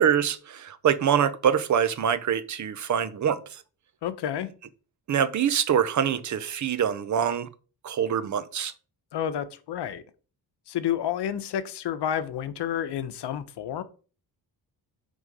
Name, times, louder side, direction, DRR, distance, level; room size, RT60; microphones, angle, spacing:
voice 1, 0.0-3.6 5.1-7.5 7.8-8.7, right 8 dB, 45° right, 0.6 m, -24 dB
voice 2, 4.0-4.5 9.1-10.0 10.7-13.8, left 10 dB, 85° left, 0.8 m, -30 dB
6.3 x 3.8 x 5.2 m
wide cardioid pair, 150°, 40 cm